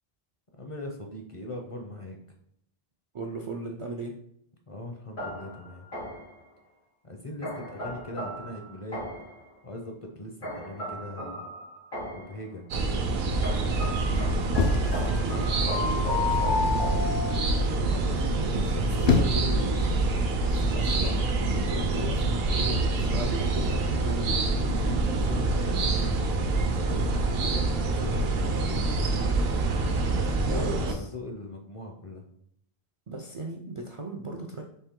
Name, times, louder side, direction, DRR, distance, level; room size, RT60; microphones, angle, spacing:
voice 1, 0.6-2.2 4.7-5.9 7.0-9.0 9.6-11.4 12.1-12.7 25.0-28.7 29.7-32.2, left 1 dB, 40° left, 2 dB, 0.6 m, -40 dB
voice 2, 3.1-4.2 14.8-16.1 17.7-20.2 20.7-21.2 21.7-24.4 30.2-31.1 33.1-34.7, right 2 dB, 45° right, 1 dB, 0.4 m, -37 dB
sound 1, 5.2-6.4 7.4-9.4 10.4-12.4 13.4-17.7, left 3 dB, 85° left, 2.4 m, -34 dB
sound 2, 12.7-31.0, right 2 dB, 75° right, 0.8 m, -26 dB
sound 3, 14.5-15.6 16.3-16.7 18.7-19.6 20.5-20.8, left 4 dB, 70° left, 0.8 m, -28 dB
4.3 x 2.9 x 3.6 m, 0.68 s
omnidirectional pair, 1.0 m